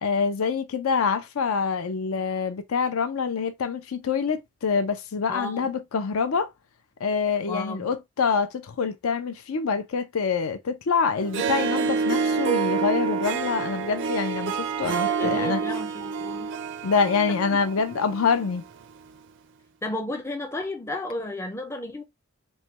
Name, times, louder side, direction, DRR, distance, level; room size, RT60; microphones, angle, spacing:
voice 1, 0.0-6.5 7.0-15.6 16.8-18.6, left 5 dB, 70° left, 0.5 m, -26 dB
voice 2, 5.3-5.7 7.5-7.9 14.8-16.5 17.3-17.6 19.8-22.0, left 2 dB, 10° left, 0.4 m, -33 dB
Harp, 11.2-18.6, right 5 dB, 55° right, 0.4 m, -28 dB
3.2 x 2.2 x 2.8 m
head